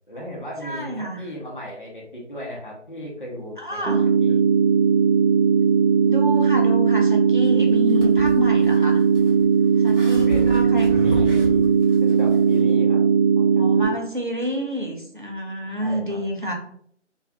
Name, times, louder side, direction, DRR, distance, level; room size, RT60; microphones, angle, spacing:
voice 1, 0.1-3.9 4.2-4.4 10.1-10.6 11.0-13.0 13.4-13.5 13.8-14.0 15.8-16.2, equal, 45° left, -3 dB, 0.7 m, -36 dB
voice 2, 0.6-1.3 3.6-4.1 6.0-9.0 9.8-10.9 13.6-16.5, equal, 45° right, 0 dB, 0.4 m, -28 dB
sound 1, 3.9-13.9, right 6 dB, 90° right, 0.7 m, -18 dB
sound 2, 7.4-12.6, equal, 25° right, 0.9 m, -33 dB
2.9 x 2.3 x 2.3 m, 0.65 s
figure-of-eight pair, 170°, 37 cm